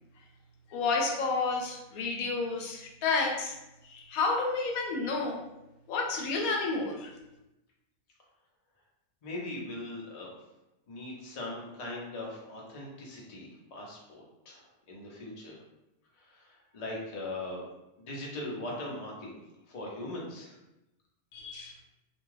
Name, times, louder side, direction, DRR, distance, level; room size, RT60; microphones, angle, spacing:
voice 1, 0.7-3.6 3.8-5.4 5.9-7.1 21.3-21.8, left 3 dB, 85° left, 1 dB, 1.1 m, -30 dB
voice 2, 9.2-10.3 10.9-14.6 14.9-15.6 16.3-16.4 16.7-17.6 18.0-19.4 19.7-20.5, left 2 dB, 45° left, -3 dB, 0.5 m, -40 dB
2.5 x 2.3 x 3.1 m, 0.94 s
omnidirectional pair, 1.5 m